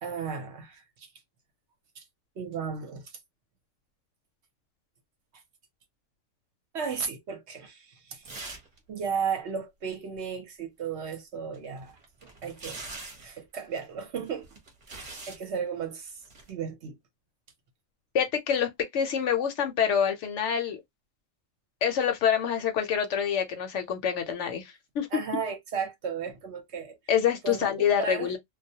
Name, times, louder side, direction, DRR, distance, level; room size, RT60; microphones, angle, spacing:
voice 1, 0.0-1.1 2.0-2.1 2.4-3.1 6.7-8.5 8.9-12.8 13.2-14.5 14.9-16.2 16.5-17.0 25.1-27.0 27.4-27.7 28.0-28.3, right 6 dB, 60° right, 0.9 m, -35 dB
sound 1, 8.2-8.8 9.0-9.1 11.5-13.3 14.3-15.4 16.2-16.5, right 3 dB, 35° right, 0.8 m, -43 dB
voice 2, 18.1-20.8 21.8-25.1 27.1-28.4, left 8 dB, 70° left, 0.8 m, -26 dB
2.3 x 2.1 x 2.7 m
omnidirectional pair, 1.4 m